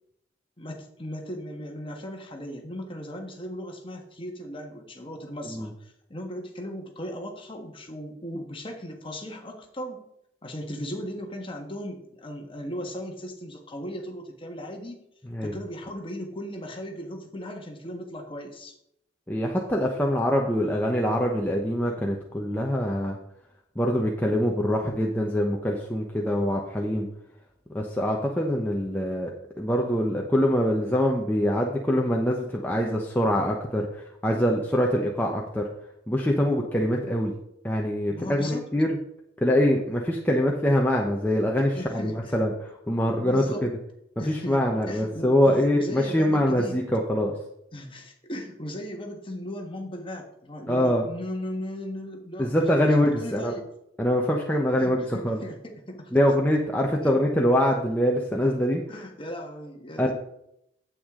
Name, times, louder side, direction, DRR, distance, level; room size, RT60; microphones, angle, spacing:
voice 1, 0.6-10.1 10.4-15.0 15.4-18.7 38.1-38.6 41.7-42.4 43.2-43.7 44.2-46.8 47.7-52.7 53.2-53.6 54.8-56.1 57.0-57.2 58.9-60.1, equal, 25° left, 3 dB, 1.4 m, -37 dB
voice 2, 19.3-23.2 23.8-27.1 27.7-35.7 36.1-37.3 37.6-39.0 39.4-43.7 44.3-47.3 50.7-51.0 52.4-53.5 54.0-55.4 56.1-58.8 60.0-60.1, equal, 10° left, -1 dB, 0.8 m, -24 dB
9.3 x 8.3 x 3.7 m, 0.77 s
head